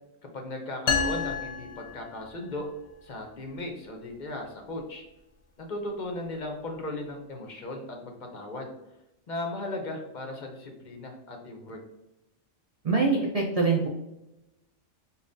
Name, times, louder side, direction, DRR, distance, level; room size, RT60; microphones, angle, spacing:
voice 1, 0.3-2.7 3.0-5.0 5.6-8.7 9.3-11.8, left 2 dB, 45° left, 2 dB, 0.7 m, -37 dB
sound 1, 0.9-2.6, left 5 dB, 85° left, 1.0 m, -30 dB
voice 2, 12.8-13.9, right 4 dB, 55° right, -1 dB, 0.4 m, -24 dB
5.2 x 2.4 x 2.5 m, 0.92 s
omnidirectional pair, 1.3 m